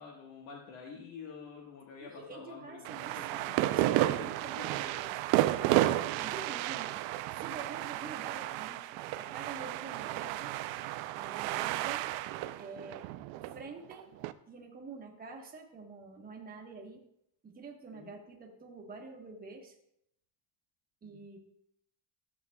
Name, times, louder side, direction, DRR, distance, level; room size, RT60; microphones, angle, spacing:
voice 1, 0.0-4.1 4.6-4.7 6.2-6.3 11.7-11.9 17.9-18.1 21.0-21.2, left 6 dB, 75° left, -1 dB, 1.4 m, -48 dB
voice 2, 2.0-5.2 5.6-7.0 7.4-8.8 9.1-10.5 11.2-12.0 12.6-13.1 13.5-14.1 14.5-17.0 17.4-19.7 21.0-21.4, right 4 dB, 20° right, 1 dB, 1.1 m, -47 dB
sound 1, 2.8-14.3, right 15 dB, 80° right, 0.5 m, -32 dB
13.5 x 7.4 x 2.2 m, 0.77 s
cardioid pair, 175°, 46 cm